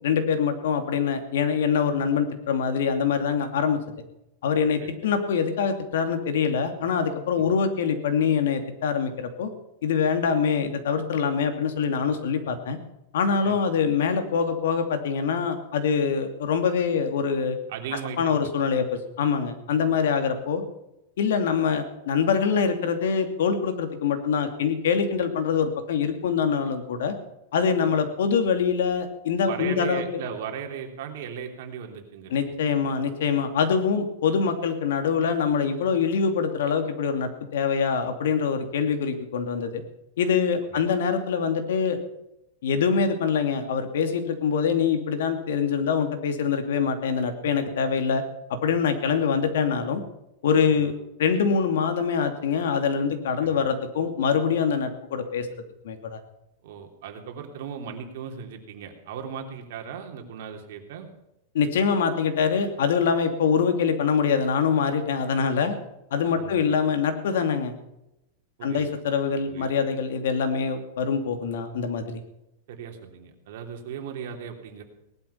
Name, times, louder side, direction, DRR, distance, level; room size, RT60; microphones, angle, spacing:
voice 1, 0.0-3.8 4.4-9.5 9.8-12.8 13.1-17.6 18.2-20.6 21.2-27.1 27.5-30.0 32.3-39.8 40.2-42.0 42.6-48.2 48.5-50.0 50.4-50.9 51.2-55.5 55.8-56.2 61.5-65.8 66.1-67.7 68.6-72.2, left 6 dB, 75° left, 7 dB, 2.7 m, -24 dB
voice 2, 17.7-18.5 19.8-19.9 29.4-32.5 40.7-40.8 50.7-50.9 53.4-53.7 56.6-61.1 66.3-66.7 68.6-68.9 69.5-69.8 72.7-74.8, right 7 dB, 55° right, 3 dB, 3.3 m, -37 dB
18.5 x 12.0 x 5.8 m, 0.86 s
supercardioid pair, 165°, 0 cm